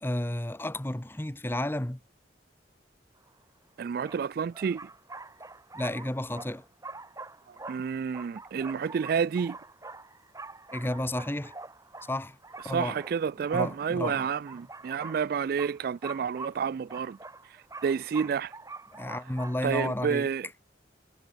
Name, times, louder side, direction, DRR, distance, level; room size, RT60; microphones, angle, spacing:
voice 1, 0.0-2.0 5.7-6.6 10.7-11.6 12.1-12.4 12.6-13.0 13.5-14.3 18.9-20.3, left 1 dB, 15° left, 0.9 m, -32 dB
sound 1, 3.3-3.4 4.0-19.9, right 3 dB, 20° right, 3.1 m, -45 dB
voice 2, 3.8-4.8 7.5-9.6 12.7-17.2 17.5-17.6 17.8-18.5 19.6-20.5, right 6 dB, 55° right, 0.3 m, -29 dB
head